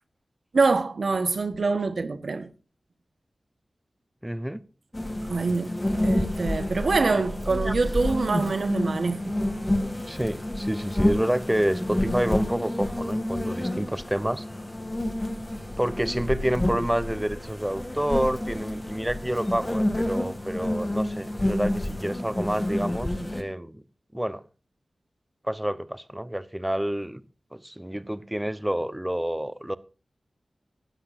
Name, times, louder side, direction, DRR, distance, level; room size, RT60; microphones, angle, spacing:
voice 1, 0.5-2.5 5.3-5.7 6.0-9.3, right 3 dB, 70° right, 1.3 m, -25 dB
voice 2, 4.2-4.6 7.0-7.2 7.6-7.7 10.1-14.4 15.8-23.8 24.1-24.4 25.4-27.2 27.5-29.8, right 1 dB, 10° right, 0.9 m, -28 dB
sound 1, 4.9-23.4, left 1 dB, 25° left, 2.4 m, -29 dB
18.5 x 12.5 x 2.6 m
cardioid pair, 50°, 0 cm